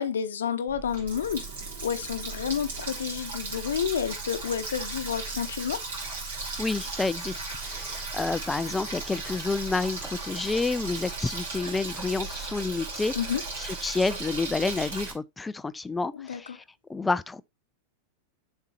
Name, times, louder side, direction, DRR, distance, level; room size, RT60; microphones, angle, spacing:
voice 1, 0.0-1.5 1.8-5.8 13.1-13.4 16.1-16.6, left 8 dB, 65° left, 0.9 m, -30 dB
Water tap faucet, 0.7-15.1, right 3 dB, 65° right, 3.5 m, -36 dB
voice 2, 6.6-13.1 13.6-16.6 16.9-17.4, left 3 dB, 10° left, 0.5 m, -29 dB
7.3 x 4.5 x 4.2 m
figure-of-eight pair, 90°, 0 cm